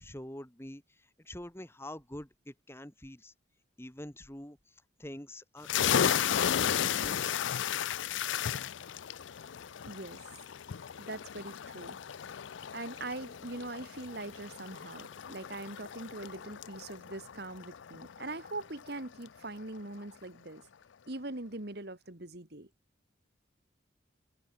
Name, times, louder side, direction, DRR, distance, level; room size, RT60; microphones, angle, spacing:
voice 1, 0.0-3.3 3.8-7.5, left 1 dB, 10° left, 2.2 m, -46 dB
sound 1, 5.6-19.0, left 9 dB, 70° left, 0.5 m, -34 dB
voice 2, 9.8-10.2 11.0-12.0 12.7-20.6 21.1-22.7, right 2 dB, 55° right, 2.1 m, -42 dB
head